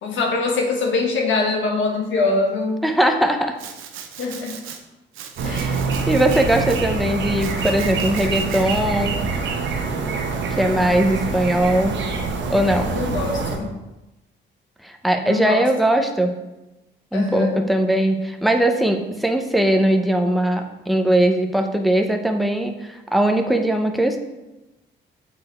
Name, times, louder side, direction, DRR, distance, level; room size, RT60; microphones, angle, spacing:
voice 1, 0.0-2.8 4.2-4.6 5.4-5.8 12.8-13.7 15.2-15.6 17.1-17.6, left 3 dB, 75° left, 1 dB, 1.4 m, -23 dB
voice 2, 2.8-3.6 5.4-9.2 10.5-12.0 12.5-12.9 14.8-16.3 17.1-24.2, right 1 dB, ahead, 4 dB, 0.7 m, -20 dB
Domestic sounds home sounds, 3.6-4.8 5.1-6.8 7.4-8.8, right 8 dB, 90° right, 0.7 m, -38 dB
sound 1, 5.4-13.6, right 4 dB, 65° right, 1.0 m, -25 dB
6.6 x 4.2 x 4.4 m, 1.0 s
cardioid pair, 90°, 20 cm